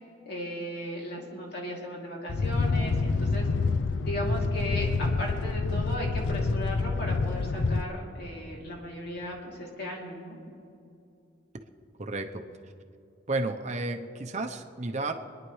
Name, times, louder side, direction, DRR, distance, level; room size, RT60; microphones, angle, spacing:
voice 1, 0.2-3.5 4.0-10.4, equal, 65° left, -2 dB, 2.8 m, -36 dB
sound 1, 2.3-7.8, left 4 dB, 85° left, 0.5 m, -27 dB
voice 2, 12.0-12.4 13.3-15.1, right 2 dB, 40° right, 6 dB, 0.8 m, -32 dB
26.5 x 10.5 x 3.2 m, 2.6 s
head